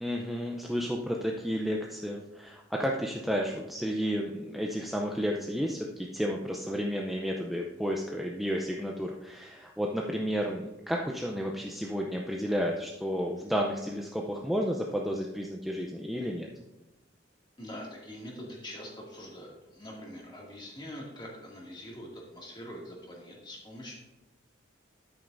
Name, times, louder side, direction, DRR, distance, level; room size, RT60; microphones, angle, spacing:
voice 1, 0.0-16.5, equal, ahead, -1 dB, 0.5 m, -32 dB
voice 2, 17.6-24.0, equal, 25° left, -3 dB, 2.2 m, -44 dB
10.0 x 8.9 x 2.6 m, 1.0 s
head